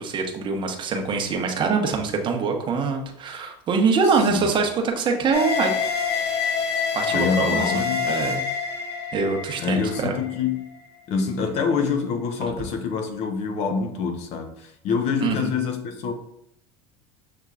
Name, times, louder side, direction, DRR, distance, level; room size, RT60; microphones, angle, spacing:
voice 1, 0.0-5.7 6.9-7.7 8.0-8.5 9.1-10.2 15.2-15.5, right 5 dB, 35° right, 3 dB, 0.9 m, -24 dB
sound 1, 5.3-10.7, left 6 dB, 85° left, 1.0 m, -26 dB
voice 2, 7.1-8.1 9.6-10.7 11.1-16.1, left 5 dB, 50° left, 6 dB, 0.8 m, -26 dB
6.6 x 2.9 x 2.4 m, 0.73 s
supercardioid pair, 110°, 14 cm